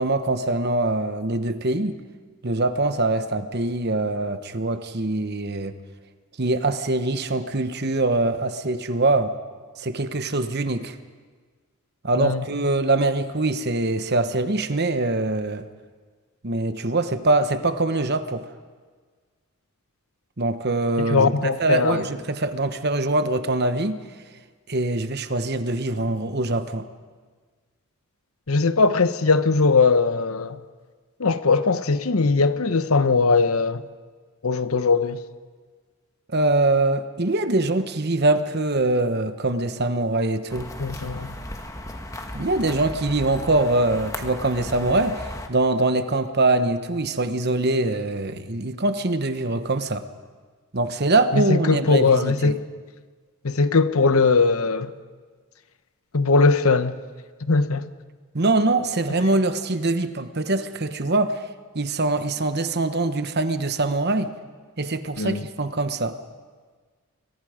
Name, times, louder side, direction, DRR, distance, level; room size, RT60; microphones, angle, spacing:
voice 1, 0.0-2.0 2.4-5.7 6.4-9.3 9.8-10.9 12.0-15.6 16.4-18.5 20.4-24.0 24.7-26.9 36.3-40.7 42.3-50.0 50.7-52.5 58.3-61.4 61.7-64.3 64.8-66.2, right 2 dB, 45° right, 1.1 m, -23 dB
voice 2, 21.0-22.0 28.5-30.6 31.2-33.8 34.4-35.2 40.8-41.3 51.3-52.6 53.4-54.9 56.1-57.0 57.5-57.9 65.2-65.4, left 4 dB, 70° left, 1.0 m, -20 dB
sound 1, 40.5-45.5, left 1 dB, 15° left, 1.5 m, -36 dB
30.0 x 23.0 x 5.1 m
head